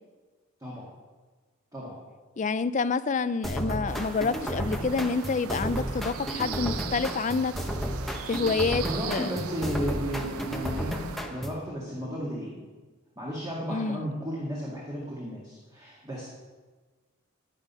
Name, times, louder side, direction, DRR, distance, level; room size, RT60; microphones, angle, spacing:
voice 1, 2.4-7.5 8.3-9.3 13.7-14.1, left 4 dB, 35° left, 14 dB, 0.4 m, -28 dB
sound 1, 3.4-11.7, equal, ahead, 0.9 m, -33 dB
sound 2, 3.9-11.2, right 8 dB, 90° right, 0.5 m, -40 dB
voice 2, 8.8-11.0 11.3-12.6 13.2-16.3, equal, 15° right, -5 dB, 2.0 m, -34 dB
10.5 x 10.0 x 5.6 m, 1.3 s
head